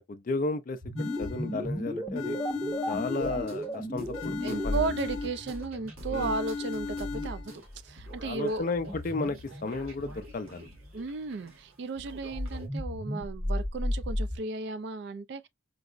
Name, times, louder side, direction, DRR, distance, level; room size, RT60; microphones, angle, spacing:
voice 1, 0.0-2.4 2.9-4.9 6.1-6.3 8.2-10.7, left 3 dB, 40° left, 0.4 m, -34 dB
sound 1, 0.8-10.9 12.2-14.4, equal, 10° right, 0.7 m, -35 dB
sound 2, 1.0-1.7 2.2-3.7 4.1-5.7 6.1-7.6, left 4 dB, 80° left, 0.7 m, -37 dB
sound 3, 3.2-12.7, equal, 90° right, 1.1 m, -46 dB
voice 2, 4.4-8.7 10.9-15.5, right 3 dB, 55° right, 0.3 m, -35 dB
4.6 x 2.0 x 2.4 m
head